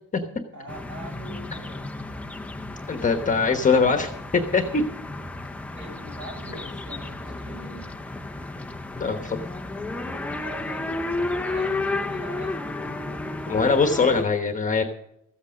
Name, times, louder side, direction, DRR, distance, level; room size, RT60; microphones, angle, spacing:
voice 1, 0.5-1.9 5.7-7.9 9.9-13.2, right 1 dB, 40° right, 2 dB, 6.1 m, -43 dB
sound 1, 0.7-14.2, left 2 dB, 5° left, 0.5 m, -32 dB
voice 2, 2.9-4.8 9.0-9.4 13.5-14.8, left 4 dB, 25° left, 5 dB, 1.1 m, -22 dB
14.5 x 8.3 x 6.3 m, 0.77 s
cardioid pair, 155°, 31 cm